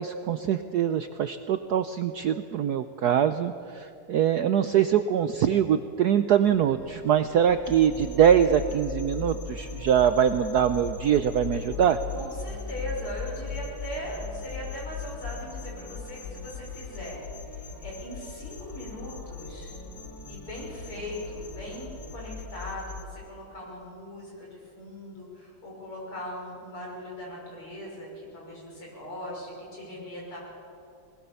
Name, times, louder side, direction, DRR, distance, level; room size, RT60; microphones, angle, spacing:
voice 1, 0.0-12.0, right 9 dB, 80° right, 10 dB, 0.9 m, -23 dB
sound 1, 6.5-22.5, right 1 dB, 10° left, 1.8 m, -48 dB
sound 2, 7.6-23.1, left 6 dB, 45° left, 2.4 m, -39 dB
voice 2, 12.1-19.7 20.3-30.4, equal, 80° left, -3 dB, 7.0 m, -39 dB
20.5 x 19.5 x 7.0 m, 2.5 s
omnidirectional pair, 2.4 m